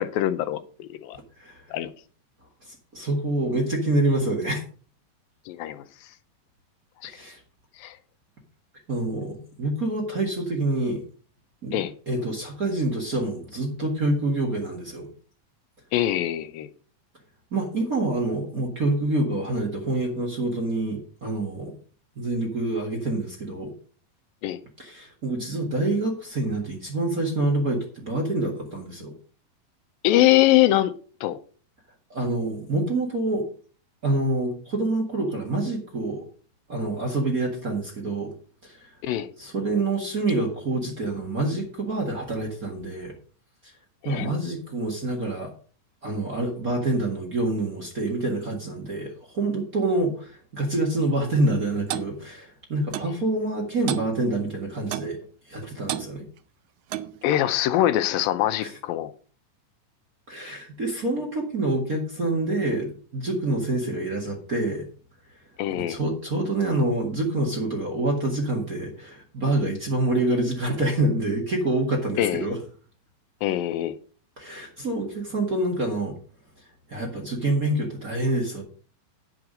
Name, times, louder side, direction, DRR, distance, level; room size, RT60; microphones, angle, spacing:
voice 1, 0.0-1.2 1.7-1.9 5.5-5.8 7.0-7.1 7.8-8.0 11.7-11.9 15.9-16.7 24.4-24.6 30.0-30.9 31.2-31.4 39.0-39.3 44.0-44.4 57.2-59.1 65.6-66.0 72.2-72.5 73.4-74.0, left 14 dB, 85° left, 2.5 m, -23 dB
voice 2, 2.6-4.6 7.0-7.4 8.9-11.0 11.6-15.1 17.5-21.7 22.1-23.7 24.8-29.1 32.1-33.5 34.0-36.2 36.7-38.3 38.6-38.9 39.4-43.2 44.0-45.5 46.0-55.2 55.5-56.2 58.6-58.7 60.3-64.9 65.7-72.6 74.4-76.1 76.9-78.6, right 2 dB, 35° right, 1.6 m, -27 dB
Clock, 51.9-52.1 52.9-53.1 53.9-54.1 54.9-55.2 55.9-56.1 56.9-57.2, right 13 dB, 80° right, 1.7 m, -31 dB
9.6 x 7.7 x 5.1 m
omnidirectional pair, 4.1 m